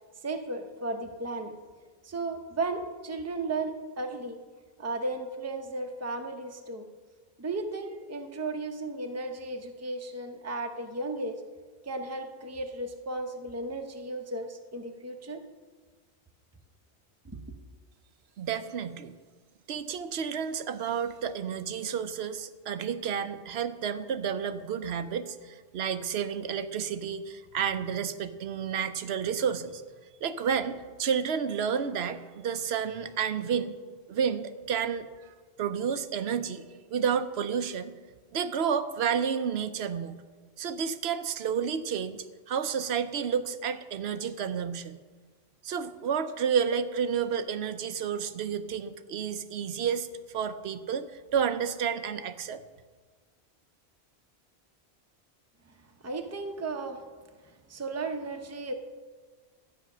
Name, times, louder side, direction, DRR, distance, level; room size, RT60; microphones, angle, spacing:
voice 1, 0.2-1.5 2.0-4.4 4.8-6.9 7.4-11.4 11.8-15.4 17.2-17.4 56.0-57.0 57.4-58.7, right 2 dB, 15° right, 4 dB, 0.8 m, -35 dB
voice 2, 18.4-19.1 19.7-29.8 30.2-33.7 34.1-35.1 35.6-36.6 36.9-37.9 38.3-40.1 40.6-45.0 45.6-51.1 51.3-52.6, right 7 dB, 70° right, 11 dB, 0.9 m, -30 dB
12.0 x 8.7 x 6.1 m, 1.4 s
omnidirectional pair, 1.1 m